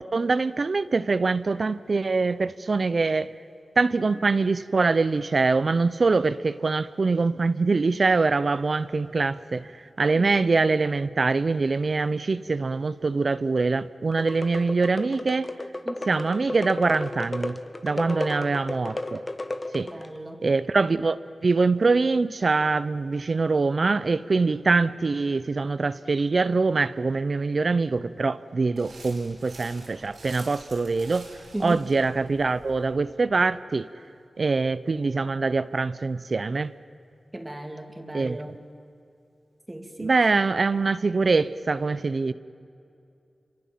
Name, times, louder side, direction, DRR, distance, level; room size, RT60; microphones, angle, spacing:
voice 1, 0.0-3.3 3.8-9.7 10.0-15.5 16.1-17.6 17.8-19.2 19.7-19.9 20.4-31.3 31.6-33.9 34.4-36.7 38.1-38.4 40.0-42.3, right 3 dB, 60° right, 0.7 m, -24 dB
voice 2, 10.0-10.5 15.8-16.1 18.0-18.5 19.8-20.4 31.5-31.8 37.3-38.5 39.7-40.2, right 1 dB, 20° right, 2.8 m, -37 dB
sound 1, 14.1-20.2, left 2 dB, 30° left, 1.3 m, -34 dB
sound 2, 28.8-32.9, right 3 dB, 90° right, 7.5 m, -47 dB
27.0 x 24.5 x 7.5 m
cardioid pair, 55°, 0 cm